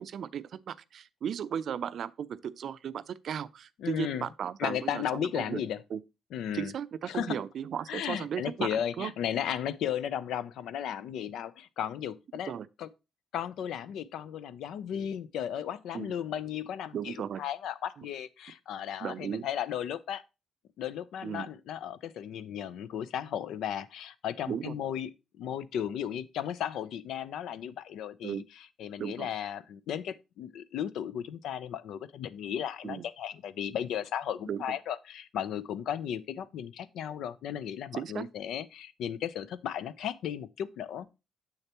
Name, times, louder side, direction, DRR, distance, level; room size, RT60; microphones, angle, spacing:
voice 1, 0.0-5.6 5.9-6.0 6.5-9.1 12.5-12.7 15.9-16.1 16.9-17.4 19.0-19.5 21.2-21.5 24.5-24.7 28.2-28.4 29.0-29.3 32.8-33.1 34.5-34.8 37.9-38.3, right 8 dB, 65° right, 0.5 m, -36 dB
voice 2, 3.8-4.3 4.6-5.8 6.3-6.7 7.1-7.4 7.9-12.5 12.8-12.9 13.3-20.2 20.8-25.1 25.4-28.4 28.8-41.1, left 9 dB, 80° left, 0.5 m, -35 dB
7.1 x 6.6 x 2.9 m
cardioid pair, 90°, 0 cm